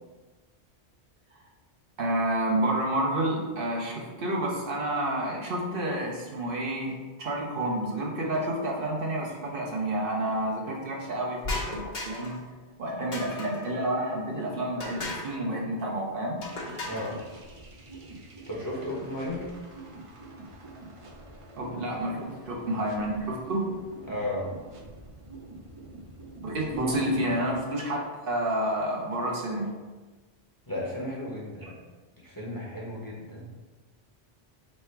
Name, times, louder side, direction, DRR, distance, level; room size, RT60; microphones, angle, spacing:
voice 1, 2.0-12.4 12.8-16.4 21.6-23.7 26.4-29.7 31.6-31.7, right 1 dB, 60° right, -2 dB, 0.9 m, -29 dB
sound 1, 11.4-12.4 13.1-13.7 14.8-15.4 16.4-17.1, left 2 dB, 50° left, 0.9 m, -35 dB
sound 2, 16.5-27.6, right 2 dB, 35° right, 0.6 m, -46 dB
voice 2, 16.8-17.2 18.5-19.5 24.1-24.5 26.7-26.9 30.7-31.7 32.2-33.5, left 1 dB, 20° left, -5 dB, 0.8 m, -34 dB
3.3 x 3.3 x 4.5 m, 1.3 s
omnidirectional pair, 1.1 m